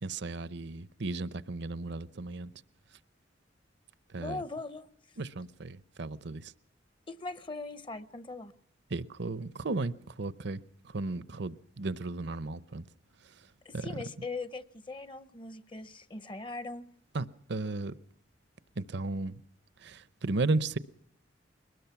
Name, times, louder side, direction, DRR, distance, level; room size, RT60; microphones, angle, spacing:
voice 1, 0.0-2.5 4.1-4.4 5.2-6.5 8.9-12.9 13.2-13.5 13.7-14.0 17.1-18.0 18.8-19.4 19.8-20.8, right 3 dB, 65° right, 0.8 m, -35 dB
voice 2, 4.2-4.9 7.1-8.5 13.6-16.8, left 3 dB, 25° left, 0.7 m, -40 dB
22.0 x 20.0 x 5.9 m
head